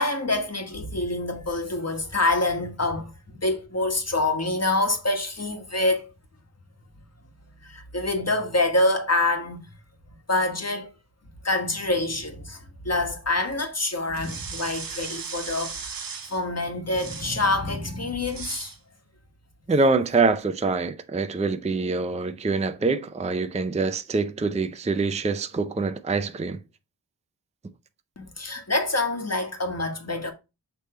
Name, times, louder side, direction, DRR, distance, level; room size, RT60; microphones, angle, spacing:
voice 1, 0.0-3.1 3.4-6.1 7.6-9.6 10.3-10.9 11.4-16.0 16.3-18.7 28.2-30.3, left 2 dB, 35° left, 1.5 m, -26 dB
sound 1, 14.1-16.4 16.9-17.4 18.3-18.8, right 5 dB, 50° right, 0.8 m, -36 dB
voice 2, 19.7-26.6, right 3 dB, 15° right, 0.4 m, -25 dB
6.7 x 3.2 x 4.3 m
wide cardioid pair, 65°, 45 cm